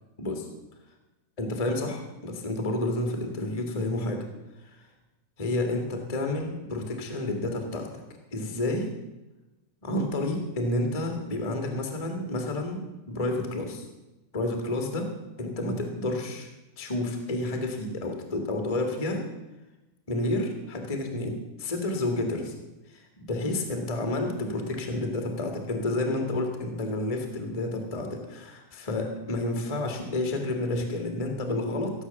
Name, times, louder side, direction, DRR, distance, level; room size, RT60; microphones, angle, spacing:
voice 1, 1.4-4.2 5.4-7.9 8.3-8.9 9.8-12.8 13.1-13.9 14.3-15.1 15.4-16.5 16.8-19.2 20.1-22.5 22.9-31.9, left 2 dB, 50° left, 4 dB, 0.4 m, -30 dB
16.5 x 8.1 x 7.0 m, 1.0 s
omnidirectional pair, 4.7 m